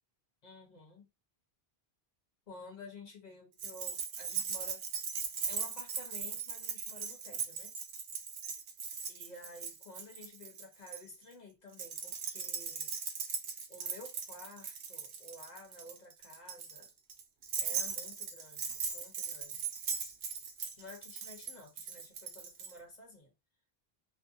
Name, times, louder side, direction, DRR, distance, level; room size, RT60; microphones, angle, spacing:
voice 1, 0.4-1.1 2.5-4.8 5.5-7.7 9.1-12.9 13.7-16.9 17.6-19.7 20.8-23.3, left 2 dB, 45° left, 0.8 m, -52 dB
Keys jangling, 3.6-11.0 11.7-22.7, right 6 dB, 75° right, 0.8 m, -39 dB
2.5 x 2.1 x 2.5 m
omnidirectional pair, 1.1 m